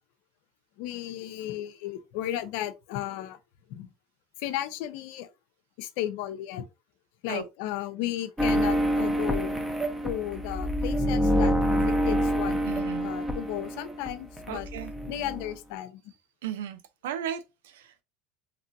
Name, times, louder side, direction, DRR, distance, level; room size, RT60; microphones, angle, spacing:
voice 1, 0.8-3.4 3.7-3.9 4.4-5.3 5.8-6.7 7.2-9.6 10.0-12.6 13.0-14.7 15.1-16.0, left 13 dB, 70° left, 0.4 m, -34 dB
sound 1, 8.4-14.1 14.4-15.5, equal, 5° right, 0.7 m, -27 dB
voice 2, 12.7-13.1 14.5-14.9 16.4-18.0, right 10 dB, 85° right, 0.5 m, -36 dB
2.9 x 2.6 x 2.6 m
hypercardioid pair, 90°, 0 cm